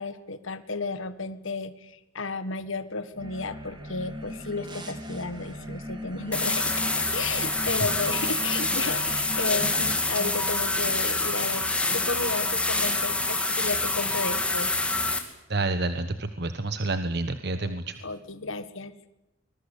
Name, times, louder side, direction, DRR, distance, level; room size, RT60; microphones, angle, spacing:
voice 1, 0.0-14.7 17.5-18.9, left 3 dB, 70° left, 12 dB, 1.6 m, -33 dB
sound 1, 3.1-10.0, equal, 20° right, 3.5 m, -38 dB
sound 2, 6.3-15.2, left 2 dB, 5° left, 2.6 m, -26 dB
voice 2, 15.5-18.0, right 2 dB, 50° right, 10 dB, 1.2 m, -29 dB
25.0 x 21.5 x 8.2 m, 0.90 s
head